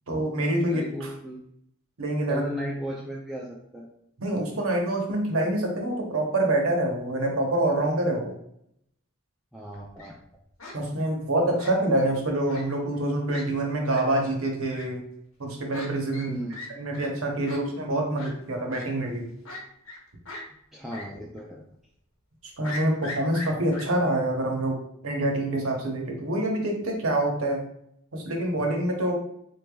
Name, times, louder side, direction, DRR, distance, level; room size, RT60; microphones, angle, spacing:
voice 1, 0.1-1.1 2.0-2.4 4.2-8.3 10.7-15.0 15.4-16.4 16.8-19.3 22.6-27.6 28.1-29.1, right 1 dB, 80° right, 1 dB, 0.9 m, -26 dB
voice 2, 0.7-1.4 2.3-3.9 9.5-10.2 16.3-16.6 20.7-21.6, equal, ahead, -4 dB, 0.3 m, -36 dB
Fowl, 9.7-10.1 10.6-10.8 11.6-12.1 12.5-12.6 12.9-13.0 13.3-13.4 13.9-14.0 14.7-14.8 15.7-15.9 16.1-16.3 16.5-16.7 16.9-17.1 17.5-17.6 18.2-18.3 18.7-18.8 19.4-20.0 20.3-20.4 20.9-21.1 21.4-21.5 22.6-23.8, left 2 dB, 80° left, 1.0 m, -39 dB
4.1 x 3.3 x 2.3 m, 0.72 s
head